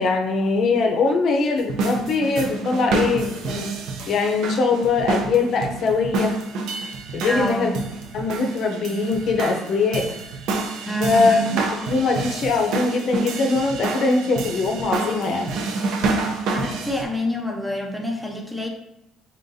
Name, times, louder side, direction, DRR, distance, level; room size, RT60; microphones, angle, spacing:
voice 1, 0.0-3.7 4.1-6.4 7.1-7.8 8.1-10.1 11.0-15.5, left 4 dB, 45° left, 3 dB, 0.5 m, -22 dB
sound 1, 1.6-17.0, right 3 dB, 65° right, 0.5 m, -28 dB
voice 2, 7.3-7.7 10.9-11.5 16.5-18.7, equal, 5° right, 1 dB, 0.4 m, -27 dB
3.9 x 3.7 x 2.6 m, 0.87 s
cardioid pair, 155°, 0 cm